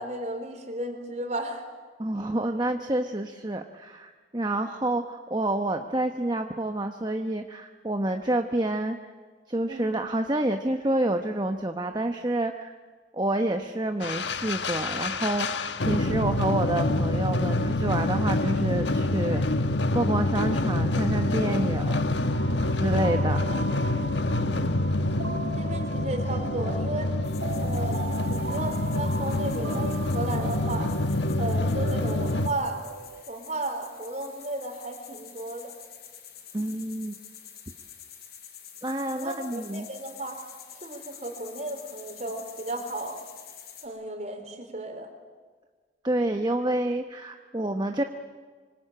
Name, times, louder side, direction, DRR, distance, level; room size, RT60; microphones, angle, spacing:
voice 1, 0.0-1.7 9.7-9.9 23.5-23.7 25.6-27.1 27.6-28.0 28.3-30.9 31.4-32.8 33.3-35.7 39.1-40.4 40.7-43.2 43.8-45.1, right 1 dB, 40° right, 5 dB, 4.2 m, -34 dB
voice 2, 2.0-9.0 9.5-12.7 13.1-19.6 19.9-22.0 22.8-23.4 36.5-37.1 38.8-39.9 46.0-48.0, right 1 dB, 25° right, 5 dB, 1.1 m, -28 dB
sound 1, 14.0-32.5, left 2 dB, 85° left, 1.4 m, -26 dB
sound 2, 22.2-33.2, right 3 dB, 75° right, 1.5 m, -39 dB
sound 3, 27.2-43.9, left 8 dB, 60° left, 6.5 m, -48 dB
25.5 x 25.0 x 8.9 m, 1.5 s
head